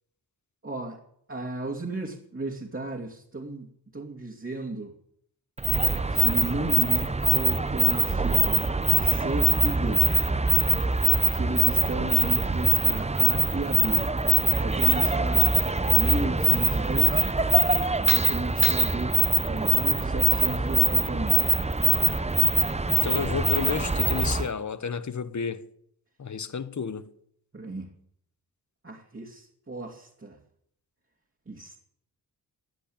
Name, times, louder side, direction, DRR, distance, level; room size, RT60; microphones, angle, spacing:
voice 1, 0.6-1.0 1.3-4.9 6.1-8.7 9.0-10.1 11.3-14.1 14.6-15.6 15.8-17.3 18.1-21.6 27.5-27.9 28.8-30.4 31.5-31.8, right 2 dB, 30° right, 2.7 m, -34 dB
sound 1, 5.6-24.5, right 2 dB, 15° right, 0.9 m, -23 dB
voice 2, 22.9-25.7 26.2-27.1, left 6 dB, 45° left, 1.1 m, -31 dB
15.5 x 8.5 x 8.8 m
cardioid pair, 55°, 39 cm